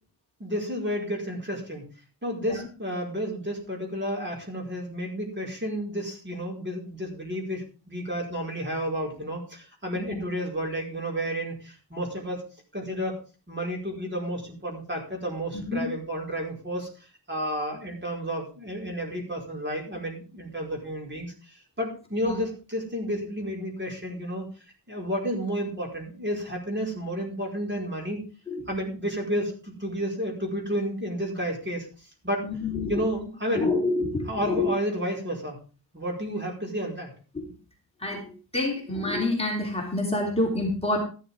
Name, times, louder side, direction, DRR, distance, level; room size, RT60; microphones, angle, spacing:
voice 1, 0.4-1.9 2.2-12.5 12.7-13.2 13.5-24.5 24.9-28.2 28.7-32.5 32.9-33.7 34.3-35.6 35.9-37.1, equal, 25° right, 0 dB, 5.0 m, -31 dB
voice 2, 15.5-15.9 22.3-22.4 28.5-28.6 32.4-33.0 33.6-34.7 37.3-37.5 38.0-41.0, left 2 dB, 15° left, -2 dB, 3.5 m, -28 dB
13.5 x 12.5 x 3.6 m, 0.35 s
wide cardioid pair, 160°, 42 cm